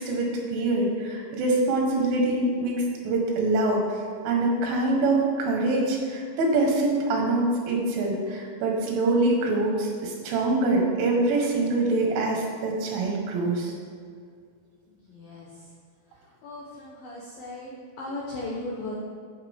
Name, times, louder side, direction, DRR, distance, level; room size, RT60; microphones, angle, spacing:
voice 1, 0.0-2.7 3.0-3.8 4.3-13.7, right 2 dB, 75° right, 0 dB, 3.8 m, -24 dB
voice 2, 14.9-15.7 16.1-18.9, left 2 dB, 75° left, -5 dB, 2.2 m, -37 dB
12.0 x 9.3 x 3.7 m, 2.2 s
omnidirectional pair, 5.9 m